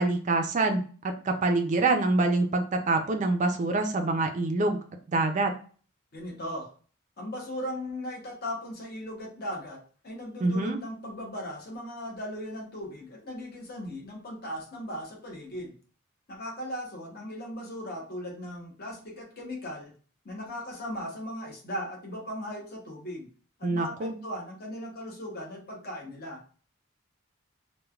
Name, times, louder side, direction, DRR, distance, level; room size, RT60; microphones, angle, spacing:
voice 1, 0.0-4.8 5.1-5.5 10.4-10.8 23.6-24.1, right 2 dB, 35° right, 5 dB, 0.3 m, -26 dB
voice 2, 6.1-6.7 7.2-15.7 16.3-19.9 20.2-23.3 23.6-26.4, equal, 45° left, -1 dB, 0.8 m, -38 dB
3.1 x 2.1 x 2.3 m, 0.41 s
head